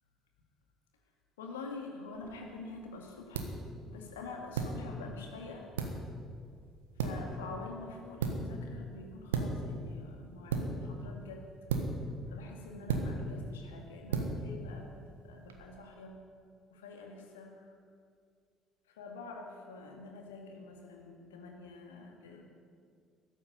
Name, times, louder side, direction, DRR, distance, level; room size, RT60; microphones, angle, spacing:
voice 1, 1.4-3.5 3.9-5.7 7.0-11.5 11.9-16.2 16.7-17.7 18.9-22.4, left 3 dB, 75° left, 2 dB, 2.1 m, -46 dB
sound 1, 2.1-15.6, right 4 dB, 75° right, 1.4 m, -38 dB
14.0 x 9.7 x 9.6 m, 2.1 s
figure-of-eight pair, 50°, 0 cm